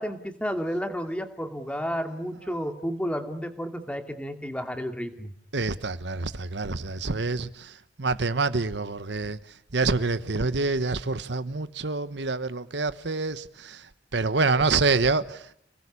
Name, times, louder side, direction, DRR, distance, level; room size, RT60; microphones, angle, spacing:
voice 1, 0.0-5.3, equal, 5° left, 2.5 m, -31 dB
voice 2, 5.5-15.5, right 3 dB, 75° right, 1.2 m, -27 dB
29.0 x 20.0 x 8.5 m
head